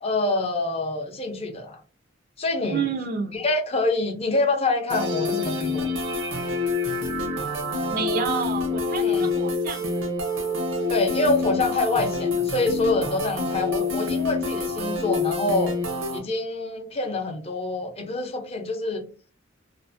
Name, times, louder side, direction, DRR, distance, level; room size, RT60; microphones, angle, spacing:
voice 1, 0.0-1.8 2.4-2.8 3.3-5.9 9.0-9.3 10.9-15.7 16.1-19.0, left 2 dB, 30° left, 0.5 m, -26 dB
voice 2, 2.7-3.4 7.9-10.1, right 6 dB, 45° right, 0.3 m, -29 dB
sound 1, 4.9-16.2, left 3 dB, 85° right, 0.7 m, -27 dB
2.5 x 2.4 x 2.4 m
head